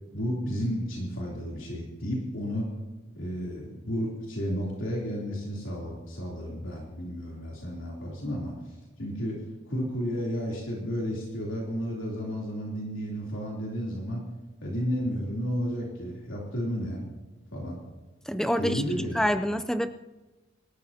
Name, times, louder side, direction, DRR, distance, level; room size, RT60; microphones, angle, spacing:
voice 1, 0.1-2.7 3.1-8.5 9.0-9.4 9.7-14.2 14.6-17.0 17.5-17.8 18.6-19.2, equal, 75° left, -4 dB, 3.3 m, -32 dB
voice 2, 18.3-18.8 19.1-19.9, equal, 5° left, 9 dB, 0.5 m, -26 dB
25.0 x 13.0 x 2.9 m, 1.2 s
head